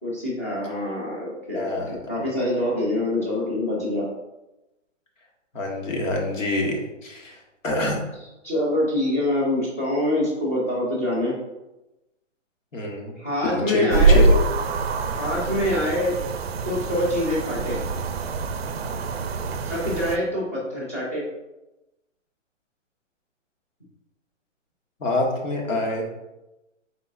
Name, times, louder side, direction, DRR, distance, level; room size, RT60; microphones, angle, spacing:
voice 1, 0.0-4.1 8.4-11.3 13.2-14.3 15.1-16.1 16.6-17.8 19.7-21.3 25.7-26.0, left 1 dB, 10° left, -7 dB, 0.5 m, -25 dB
voice 2, 1.5-2.0 5.5-8.0 12.7-13.1 13.5-14.4 25.0-26.1, left 2 dB, 80° left, 0 dB, 1.4 m, -26 dB
sound 1, 13.9-20.2, right 3 dB, 55° right, 0.4 m, -24 dB
4.4 x 3.9 x 2.5 m, 0.99 s
hypercardioid pair, 165°, 38 cm